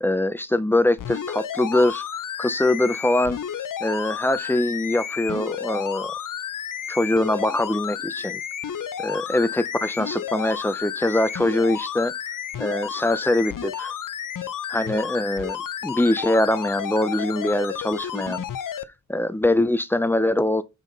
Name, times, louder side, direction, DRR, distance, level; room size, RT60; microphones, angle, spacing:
voice 1, 0.0-2.0 2.4-3.4 3.8-6.1 6.9-8.4 9.0-12.1 12.6-13.9 14.7-18.4 19.1-20.6, left 1 dB, 5° left, 0.6 m, -23 dB
sound 1, 1.0-18.8 19.4-19.5, left 9 dB, 75° left, 0.7 m, -32 dB
7.1 x 5.7 x 4.0 m
wide cardioid pair, 75°, 32 cm